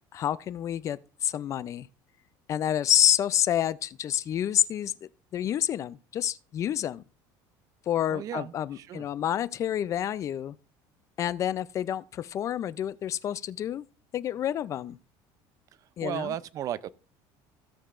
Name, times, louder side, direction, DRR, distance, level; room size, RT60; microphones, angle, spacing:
voice 1, 0.1-1.9 2.5-4.9 5.3-7.0 7.9-10.6 11.2-13.9 14.1-15.0 16.0-16.3, left 10 dB, 35° left, 0.4 m, -28 dB
voice 2, 8.1-9.0 16.0-16.9, right 11 dB, 35° right, 0.5 m, -35 dB
16.5 x 6.7 x 2.5 m
cardioid pair, 155°, 10 cm